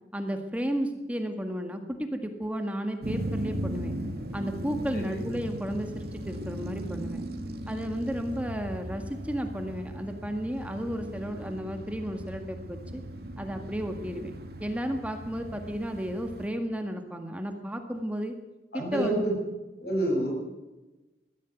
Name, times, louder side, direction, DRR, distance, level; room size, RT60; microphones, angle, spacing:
voice 1, 0.1-4.0 4.3-7.3 7.7-13.0 13.4-14.3 14.6-18.3 18.7-19.2, equal, 10° right, 5 dB, 1.8 m, -33 dB
sound 1, 3.0-16.5, right 1 dB, 60° right, 2.4 m, -38 dB
voice 2, 18.7-19.4 19.8-20.3, right 1 dB, 60° left, 1 dB, 7.4 m, -28 dB
20.5 x 14.5 x 9.2 m, 1.1 s
head